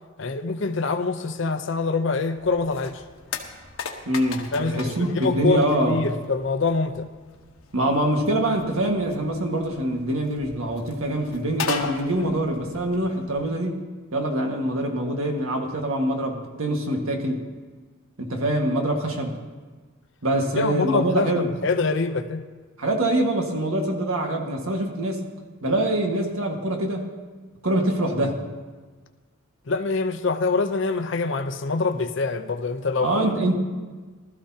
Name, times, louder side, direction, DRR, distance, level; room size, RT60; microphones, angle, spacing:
voice 1, 0.2-3.0 4.5-7.1 20.5-22.4 29.7-33.3, left 3 dB, 60° left, 8 dB, 0.7 m, -25 dB
sound 1, 2.4-13.5, left 5 dB, 85° left, 1.2 m, -38 dB
voice 2, 4.0-6.0 7.7-13.8 14.1-17.4 18.2-19.3 20.2-21.5 22.8-25.3 25.6-27.1 27.6-28.4 33.0-33.6, right 1 dB, 85° right, 2 dB, 1.7 m, -24 dB
19.5 x 13.5 x 2.8 m, 1.4 s
head